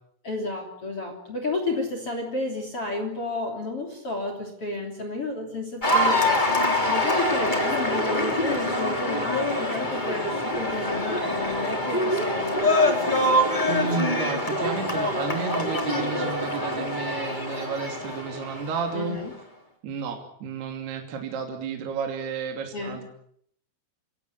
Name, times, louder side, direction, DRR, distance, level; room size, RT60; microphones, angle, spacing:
voice 1, 0.2-13.7 18.9-19.3 22.7-23.0, left 2 dB, 30° left, 4 dB, 3.3 m, -32 dB
Cheering / Applause, 5.8-19.2, left 1 dB, 10° left, 2.3 m, -25 dB
voice 2, 13.7-19.2 19.8-23.1, right 6 dB, 55° right, 3 dB, 4.5 m, -32 dB
28.5 x 17.0 x 8.2 m, 0.67 s
omnidirectional pair, 6.0 m